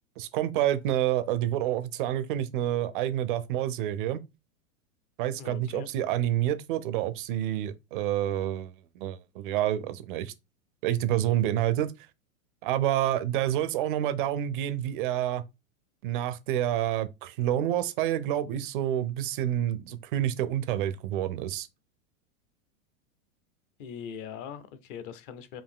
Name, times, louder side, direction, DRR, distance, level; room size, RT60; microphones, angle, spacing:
voice 1, 0.2-4.2 5.2-10.3 10.8-11.9 12.6-15.4 16.0-21.7, right 12 dB, 40° right, 0.4 m, -28 dB
voice 2, 5.4-5.9 19.9-20.0 23.8-25.6, left 8 dB, 40° left, 0.6 m, -41 dB
4.7 x 2.7 x 3.5 m
supercardioid pair, 155°, 42 cm